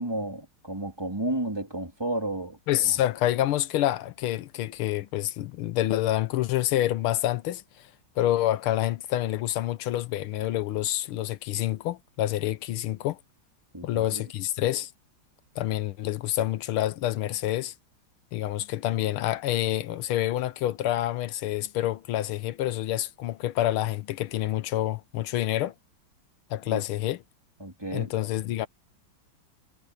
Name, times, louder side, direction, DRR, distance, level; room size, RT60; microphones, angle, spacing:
voice 1, 0.0-2.6 2.8-3.0 13.7-14.3 26.7-26.8 27.6-28.1, right 1 dB, 10° right, 3.1 m, -32 dB
voice 2, 2.7-7.9 8.2-13.2 13.8-14.9 15.6-17.7 18.3-25.7 26.5-27.2 27.9-28.7, left 13 dB, 85° left, 1.6 m, -27 dB
omnidirectional pair, 2.3 m